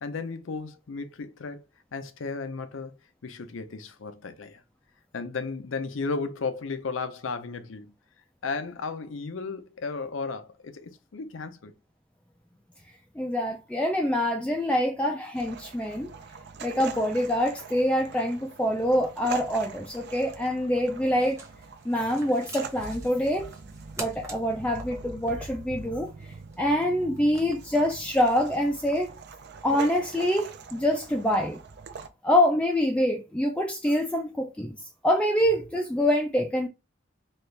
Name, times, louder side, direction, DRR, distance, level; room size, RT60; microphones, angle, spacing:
voice 1, 0.0-1.6 1.9-2.9 3.2-4.6 5.1-7.9 8.4-11.7, left 4 dB, 90° left, 0.6 m, -34 dB
voice 2, 13.2-16.1 16.6-21.4 21.9-23.5 24.0-29.1 29.6-31.6 32.2-34.8 35.0-36.7, equal, 5° left, 0.3 m, -25 dB
sound 1, 15.3-32.1, right 5 dB, 60° right, 0.5 m, -43 dB
sound 2, 21.0-28.6, right 2 dB, 15° right, 1.0 m, -47 dB
4.3 x 2.4 x 3.2 m
head